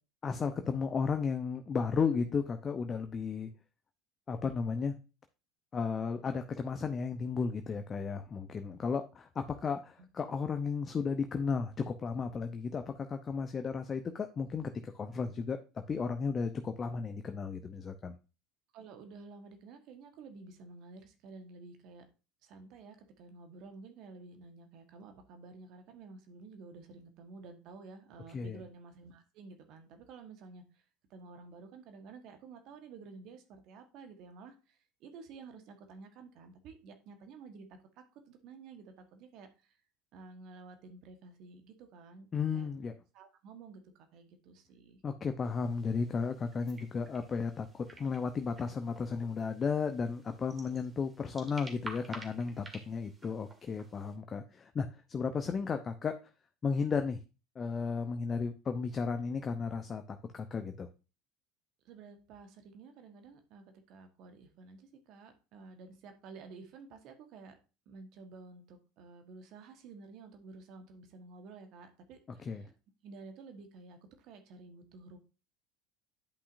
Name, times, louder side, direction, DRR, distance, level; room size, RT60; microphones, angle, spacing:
voice 1, 0.2-3.5 4.3-4.9 5.7-18.2 28.3-28.6 42.3-42.9 45.0-56.1 56.6-57.2 57.6-60.9 72.5-72.7, left 5 dB, 30° left, 7 dB, 0.7 m, -34 dB
voice 2, 18.7-22.0 22.4-39.8 40.1-42.3 42.5-42.7 43.1-45.0 61.8-67.5 67.8-72.7 73.0-75.2, right 4 dB, 55° right, 6 dB, 1.4 m, -52 dB
sound 1, 45.4-54.1, right 2 dB, 20° right, 2.0 m, -52 dB
10.5 x 5.6 x 2.6 m, 0.31 s
hypercardioid pair, 75°, 0 cm